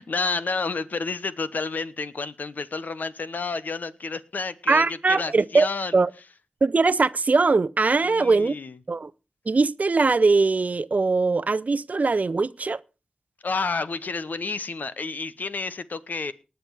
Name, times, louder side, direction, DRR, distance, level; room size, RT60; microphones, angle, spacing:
voice 1, 0.0-5.9 8.0-8.8 13.4-16.3, left 4 dB, 70° left, 0.9 m, -30 dB
voice 2, 4.7-5.7 5.9-6.1 6.6-8.5 8.9-9.1 9.5-12.8, right 3 dB, 55° right, 0.6 m, -21 dB
19.0 x 6.9 x 4.7 m
cardioid pair, 45°, 3 cm